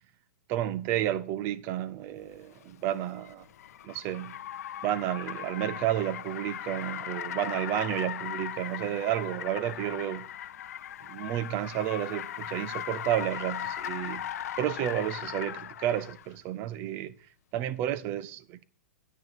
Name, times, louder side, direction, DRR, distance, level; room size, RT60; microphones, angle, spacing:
voice 1, 0.5-3.5 3.8-4.4 4.8-10.3 11.1-14.3 14.6-17.1 17.5-18.6, right 12 dB, 25° right, 0.4 m, -31 dB
Car, 2.3-16.3, left 11 dB, 65° left, 0.5 m, -38 dB
9.1 x 6.2 x 7.0 m
hypercardioid pair, 165°, 9 cm